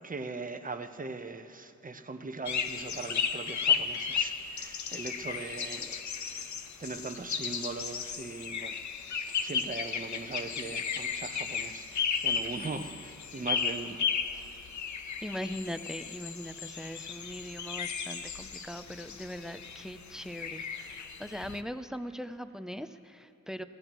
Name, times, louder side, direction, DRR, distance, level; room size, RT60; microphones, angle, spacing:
voice 1, 0.0-5.9 6.8-8.8 9.4-14.0, right 3 dB, 30° right, 7 dB, 0.8 m, -40 dB
sound 1, 2.5-21.6, left 6 dB, 70° left, 0.8 m, -34 dB
voice 2, 5.3-6.0 14.3-14.6 15.2-23.6, equal, ahead, 11 dB, 0.5 m, -41 dB
18.0 x 15.5 x 3.1 m, 2.9 s
cardioid pair, 65°, 30 cm